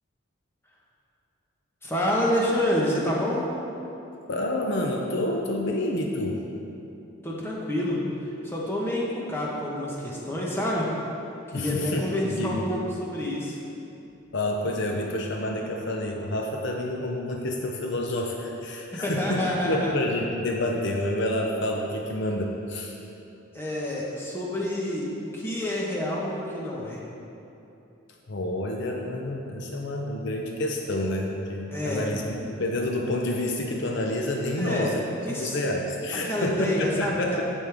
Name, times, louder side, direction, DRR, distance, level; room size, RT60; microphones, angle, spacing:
voice 1, 1.8-3.4 7.2-8.0 8.4-10.9 11.5-13.6 18.9-19.9 23.5-27.0 31.7-32.1 34.6-34.9 35.2-35.6 36.2-37.4, left 1 dB, 10° left, -4 dB, 1.2 m, -28 dB
voice 2, 4.3-6.4 11.5-12.8 14.3-23.0 28.3-35.0 35.3-37.4, left 1 dB, 60° left, 1 dB, 0.7 m, -28 dB
15.5 x 5.3 x 3.6 m, 2.8 s
head